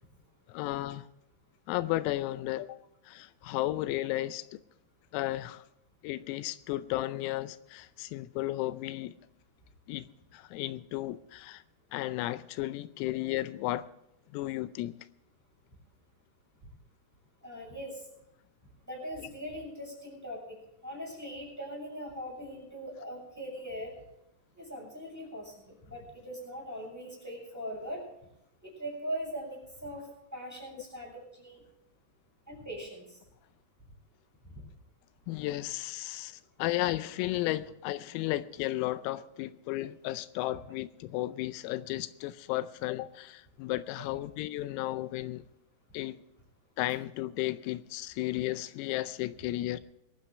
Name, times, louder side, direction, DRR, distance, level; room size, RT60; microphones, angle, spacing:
voice 1, 0.5-1.1 1.7-2.8 3.1-4.6 5.1-5.6 6.0-9.1 9.9-10.1 10.3-11.6 11.9-13.9 14.3-15.0 35.3-45.4 45.9-46.2 46.8-49.8, left 16 dB, 90° left, 3.4 m, -34 dB
voice 2, 17.4-17.9 18.9-20.4 20.8-23.9 24.6-25.5 25.9-28.0 28.6-30.0 30.3-31.1 31.4-31.6 32.5-33.0, equal, 5° right, 6.6 m, -40 dB
22.5 x 13.0 x 3.3 m
omnidirectional pair, 6.0 m